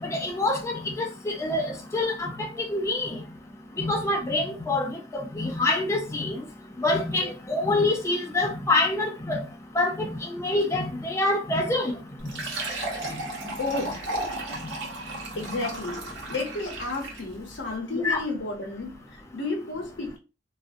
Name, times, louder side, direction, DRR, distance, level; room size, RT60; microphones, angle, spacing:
voice 1, 0.0-3.2 3.8-6.4 6.8-9.4 9.8-11.9 18.0-18.2, left 2 dB, 15° left, 0.3 m, -26 dB
Fill (with liquid), 12.2-17.3, right 2 dB, 85° right, 0.8 m, -34 dB
voice 2, 13.6-14.1 15.3-20.2, left 2 dB, 80° left, 0.8 m, -32 dB
2.4 x 2.0 x 2.5 m
head